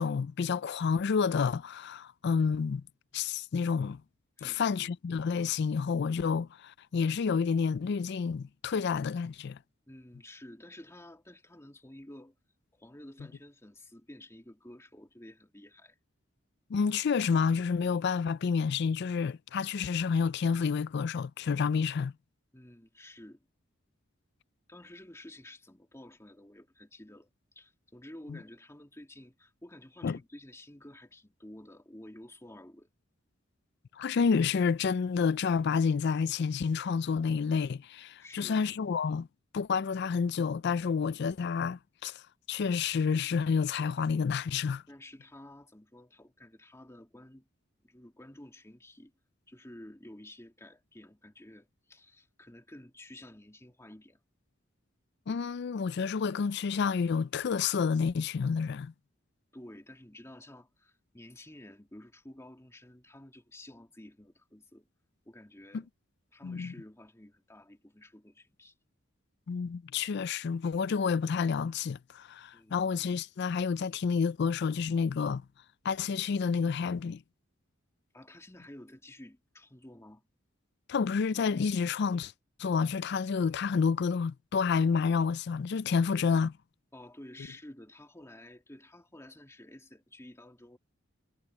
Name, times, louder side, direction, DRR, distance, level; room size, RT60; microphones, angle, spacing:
voice 1, 0.0-2.8 3.1-4.0 4.4-9.6 16.7-22.1 28.3-28.4 30.0-30.2 33.9-39.3 39.5-42.2 42.5-44.8 55.3-58.9 65.7-65.8 66.4-66.7 69.5-75.4 75.8-77.2 80.9-82.3 82.6-86.5, left 5 dB, 55° left, 0.4 m, -29 dB
voice 2, 4.4-4.9 9.9-12.3 12.7-16.0 22.5-23.4 24.7-32.9 38.2-38.7 44.9-47.5 47.8-49.1 49.5-54.2 59.5-64.9 65.3-65.9 66.3-68.7 72.5-72.8 78.1-80.3 86.9-90.8, left 1 dB, 15° left, 2.4 m, -51 dB
head